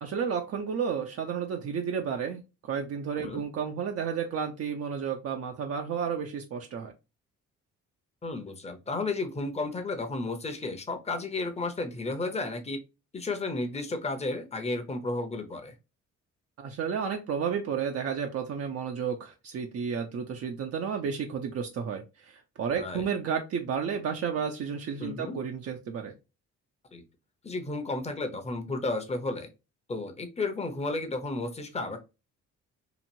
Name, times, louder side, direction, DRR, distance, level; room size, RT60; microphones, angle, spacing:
voice 1, 0.0-6.9 16.6-26.1, right 7 dB, 55° right, 3 dB, 0.5 m, -32 dB
voice 2, 8.2-12.8 13.1-15.7 22.7-23.1 25.0-25.4 26.9-27.0 27.4-29.5 29.9-32.0, left 2 dB, 20° left, 6 dB, 0.7 m, -33 dB
3.0 x 2.5 x 2.6 m, 0.28 s
cardioid pair, 90°, 30 cm